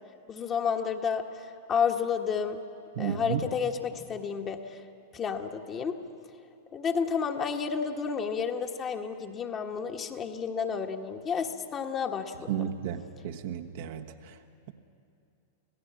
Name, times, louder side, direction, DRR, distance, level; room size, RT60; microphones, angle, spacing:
voice 1, 0.3-2.6 3.0-4.8 5.1-6.0 6.7-12.5, left 6 dB, 25° left, 4 dB, 1.5 m, -31 dB
voice 2, 3.0-3.4 12.5-14.3, right 10 dB, 55° right, 5 dB, 1.3 m, -33 dB
26.5 x 17.0 x 7.6 m, 2.6 s
figure-of-eight pair, 95°, 0 cm